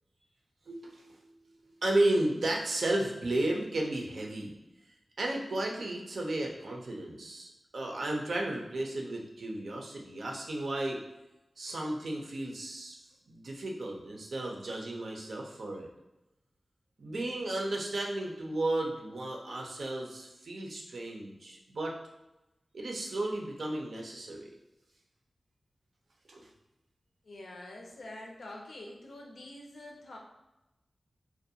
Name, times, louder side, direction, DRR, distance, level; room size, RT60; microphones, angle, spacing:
voice 1, 0.7-1.3 1.8-4.6 5.2-11.0 11.6-13.0 13.3-15.9 17.0-21.9 22.7-24.5 26.3-26.5, right 1 dB, 75° right, 0 dB, 0.5 m, -33 dB
voice 2, 27.2-30.2, left 1 dB, 85° left, -1 dB, 0.5 m, -46 dB
2.5 x 2.1 x 2.7 m, 0.96 s
wide cardioid pair, 70°, 0 cm